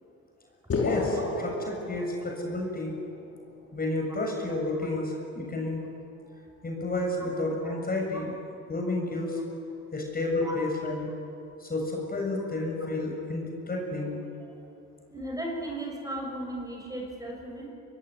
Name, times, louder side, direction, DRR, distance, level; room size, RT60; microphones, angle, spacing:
sound 1, 0.7-2.6, left 3 dB, 50° left, 5.8 m, -30 dB
voice 1, 0.8-2.9 3.7-5.8 6.6-8.4 8.7-9.4 9.9-11.1 11.6-14.2, left 2 dB, 30° left, 1 dB, 7.2 m, -31 dB
voice 2, 6.2-6.5 8.1-8.2 10.4-10.6 14.5-14.6 15.1-17.7, right 1 dB, 10° right, 0 dB, 6.7 m, -36 dB
24.5 x 22.0 x 9.9 m, 2.6 s
cardioid pair, 90°, 30 cm